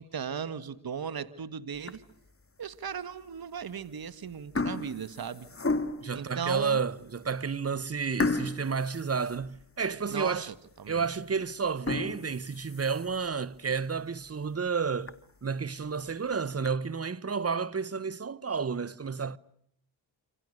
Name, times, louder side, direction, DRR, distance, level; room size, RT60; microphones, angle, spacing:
voice 1, 0.0-2.0 2.6-5.5 6.1-6.8 10.1-11.1, right 7 dB, 50° right, 1.8 m, -37 dB
sound 1, 1.8-2.3 2.9-3.0 3.8-4.1 4.3-6.2 6.8-6.9 7.3-7.4 8.2-10.0 10.4-10.5 11.0-11.1 11.7-13.3 13.8-13.9 14.3-14.4 14.7-14.8 15.1-15.2 16.1-16.7, left 3 dB, 30° left, 2.3 m, -33 dB
voice 2, 6.0-10.5 10.9-19.4, right 5 dB, 30° right, 1.1 m, -31 dB
27.5 x 26.5 x 6.6 m
cardioid pair, 55°, 46 cm